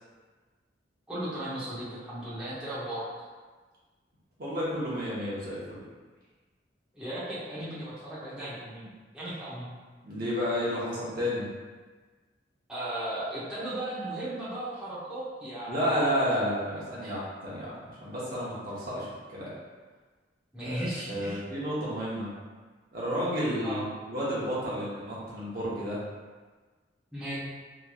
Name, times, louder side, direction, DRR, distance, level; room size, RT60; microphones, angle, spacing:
voice 1, 1.1-3.3 6.9-9.7 12.7-16.0 17.0-17.2 20.5-21.4 23.6-23.8 27.1-27.4, right 1 dB, 5° right, -12 dB, 0.7 m, -36 dB
voice 2, 4.4-5.8 10.0-11.4 15.7-19.5 20.6-20.8 21.1-22.3 22.9-26.0, equal, 50° right, -7 dB, 0.8 m, -31 dB
2.9 x 2.7 x 2.3 m, 1.4 s
head